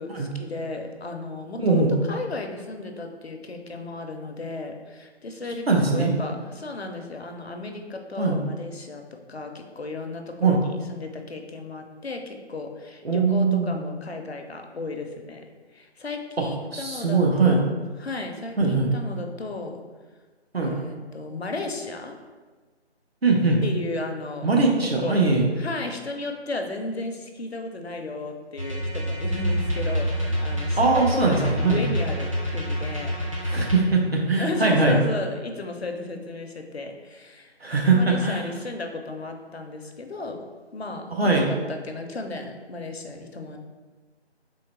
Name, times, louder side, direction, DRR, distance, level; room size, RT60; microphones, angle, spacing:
voice 1, 0.0-15.5 15.7-17.7 18.0-19.8 20.6-22.2 23.6-24.5 25.0-25.2 25.6-33.7 34.4-37.5 37.9-40.4 40.7-41.1 41.4-43.6, left 3 dB, 65° left, 4 dB, 0.7 m, -34 dB
voice 2, 1.6-1.9 5.7-6.1 8.2-8.4 10.4-10.6 13.0-13.8 16.7-17.6 18.6-18.9 20.5-20.7 23.2-23.6 24.4-25.4 30.8-31.8 33.5-35.0 37.6-38.4 41.1-41.5, right 3 dB, 60° right, -1 dB, 1.0 m, -21 dB
sound 1, 28.6-33.8, equal, 30° right, 0.8 m, -27 dB
3.9 x 3.1 x 4.5 m, 1.4 s
figure-of-eight pair, 160°, 34 cm